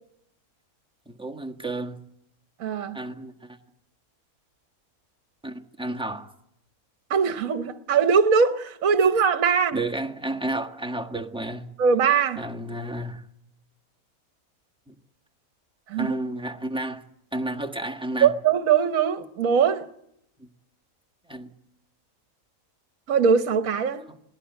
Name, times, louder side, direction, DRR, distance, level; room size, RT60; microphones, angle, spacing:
voice 1, 1.1-2.0 2.9-3.6 5.4-6.3 9.7-11.7 12.4-13.2 14.9-15.0 16.0-17.0 17.3-18.3 20.4-20.5 21.3-21.5, right 1 dB, 5° right, 1.4 m, -31 dB
voice 2, 2.6-3.0 7.1-9.8 11.8-12.4 15.9-16.2 18.2-19.9 23.1-24.0, right 6 dB, 65° right, 1.4 m, -21 dB
21.5 x 17.5 x 8.2 m
omnidirectional pair, 1.5 m